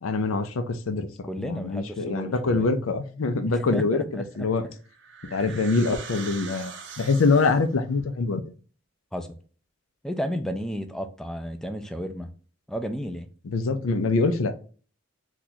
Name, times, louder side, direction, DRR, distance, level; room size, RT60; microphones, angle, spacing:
voice 1, 0.0-4.6 5.3-6.7 7.0-8.4 13.4-14.5, left 3 dB, 85° left, 9 dB, 0.5 m, -24 dB
voice 2, 1.2-2.7 3.5-4.5 9.1-9.3 10.0-12.3 12.7-13.3, equal, 5° left, 7 dB, 0.3 m, -32 dB
sound 1, 4.3-7.8, right 6 dB, 60° right, 0.5 m, -42 dB
2.8 x 2.4 x 3.9 m, 0.40 s
head